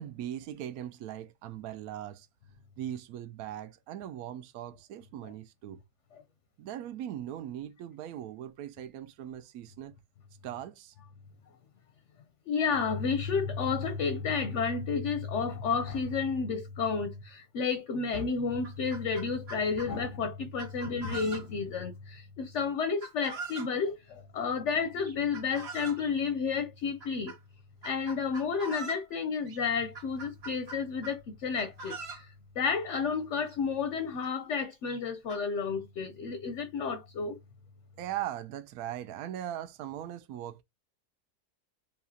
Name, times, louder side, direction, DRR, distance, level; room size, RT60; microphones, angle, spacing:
voice 1, 0.0-2.3 2.8-5.8 6.6-10.0 10.4-10.9 38.0-40.6, right 11 dB, 75° right, 1.0 m, -39 dB
voice 2, 12.5-24.0 24.3-27.3 27.8-31.9 32.6-37.4, left 5 dB, 60° left, 0.8 m, -31 dB
Chicken rooster, 18.0-18.1 18.5-19.9 20.6-21.7 23.0-23.7 25.0-26.1 27.0-27.4 27.8-29.1 29.5-29.6 29.9-31.2 31.5-32.3 33.2-33.3 33.5-33.6 34.2-34.3 34.9-35.4, right 3 dB, 45° right, 1.3 m, -43 dB
7.1 x 2.4 x 2.7 m
omnidirectional pair, 1.7 m